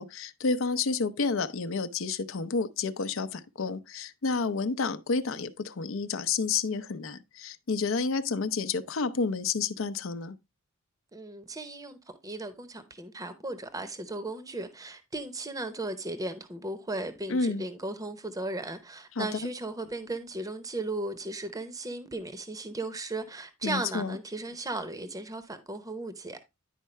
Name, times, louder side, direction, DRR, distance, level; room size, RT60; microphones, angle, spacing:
voice 1, 0.0-10.4 17.3-17.6 19.2-19.5 23.6-24.2, left 4 dB, 65° left, 0.6 m, -30 dB
voice 2, 11.1-12.0 12.2-26.4, right 2 dB, 15° right, 0.7 m, -36 dB
10.0 x 4.6 x 3.1 m
head